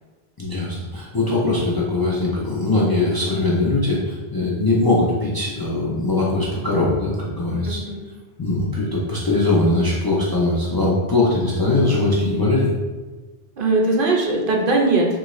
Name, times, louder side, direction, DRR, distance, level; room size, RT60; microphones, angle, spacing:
voice 1, 0.4-7.8 8.4-12.7, left 2 dB, 30° left, -5 dB, 0.4 m, -21 dB
voice 2, 7.6-8.1 13.6-15.2, right 2 dB, 65° right, 0 dB, 0.7 m, -20 dB
3.8 x 2.4 x 3.1 m, 1.2 s
omnidirectional pair, 1.0 m